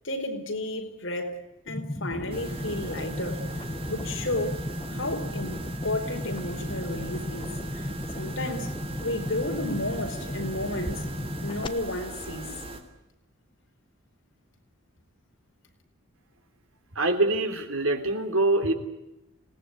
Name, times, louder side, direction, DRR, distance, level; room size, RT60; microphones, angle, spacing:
voice 1, 0.0-1.4 1.7-3.4 3.9-4.6 4.9-7.8 8.1-8.7 9.0-11.1 11.4-12.6, left 1 dB, 65° left, 4.7 m, -32 dB
sound 1, 1.7-11.7, left 1 dB, 25° left, 1.0 m, -35 dB
sound 2, 2.3-12.8, right 2 dB, 25° right, 3.4 m, -39 dB
voice 2, 16.9-18.7, right 2 dB, 80° right, 3.5 m, -24 dB
26.5 x 18.5 x 9.6 m
head